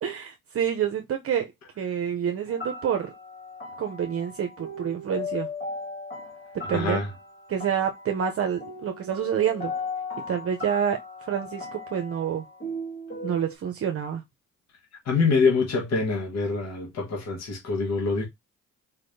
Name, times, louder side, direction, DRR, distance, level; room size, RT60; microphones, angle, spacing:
voice 1, 0.0-1.5 1.8-3.1 3.8-5.5 6.7-7.0 7.5-9.7 10.3-11.0 11.3-12.4 13.2-14.2, right 8 dB, 50° right, 0.7 m, -27 dB
sound 1, 2.5-13.6, left 2 dB, 40° left, 2.1 m, -37 dB
voice 2, 6.7-7.1 15.0-18.3, left 4 dB, 60° left, 1.5 m, -25 dB
4.2 x 3.3 x 2.7 m
cardioid pair, 90°, 30 cm